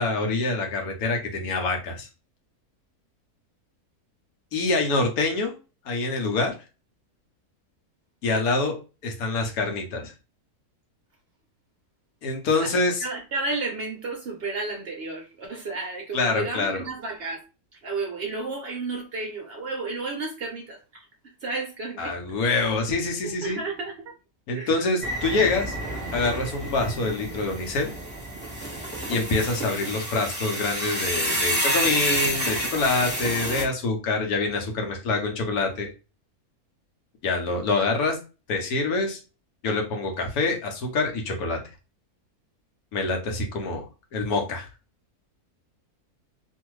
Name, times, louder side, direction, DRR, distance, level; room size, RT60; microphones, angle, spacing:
voice 1, 0.0-2.1 4.5-5.5 5.8-6.5 8.2-8.8 9.0-10.1 12.2-13.1 16.1-16.9 22.0-23.6 24.5-25.8 26.1-27.9 29.1-35.9 37.2-38.2 38.5-39.2 39.6-41.6 42.9-43.8 44.1-44.7, left 3 dB, 75° left, 1.2 m, -25 dB
voice 2, 13.0-17.4 17.8-21.0 21.4-22.1 23.2-24.1 24.5-24.7, right 3 dB, 60° right, 0.6 m, -32 dB
sound 1, 25.0-33.6, right 1 dB, 5° left, 1.2 m, -29 dB
2.6 x 2.6 x 3.0 m
omnidirectional pair, 1.6 m